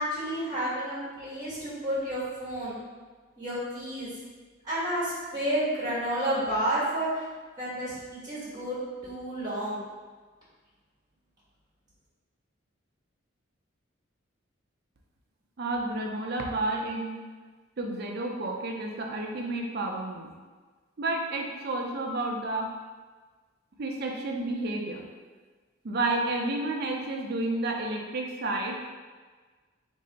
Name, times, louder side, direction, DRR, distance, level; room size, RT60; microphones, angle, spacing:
voice 1, 0.0-2.8 3.4-4.1 4.6-7.1 7.6-8.8 9.0-9.8, right 1 dB, 20° right, -9 dB, 1.1 m, -30 dB
voice 2, 15.6-17.1 17.8-20.3 21.0-22.7 23.8-25.0 25.8-28.9, right 2 dB, 50° right, 1 dB, 0.5 m, -31 dB
3.2 x 2.7 x 3.9 m, 1.4 s
head